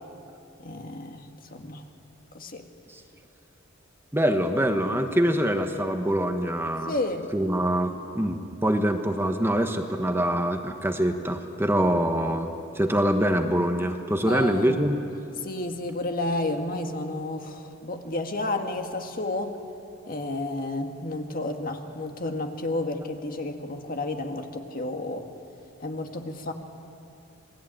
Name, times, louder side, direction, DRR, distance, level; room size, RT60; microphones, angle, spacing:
voice 1, 0.6-1.8 2.3-2.7 6.9-7.3 14.3-14.8 15.4-19.6 20.1-25.2 25.8-26.5, left 2 dB, 45° left, 4 dB, 2.0 m, -31 dB
voice 2, 4.1-6.9 7.3-15.0, equal, 10° right, 5 dB, 1.3 m, -24 dB
27.5 x 20.0 x 9.1 m, 2.7 s
head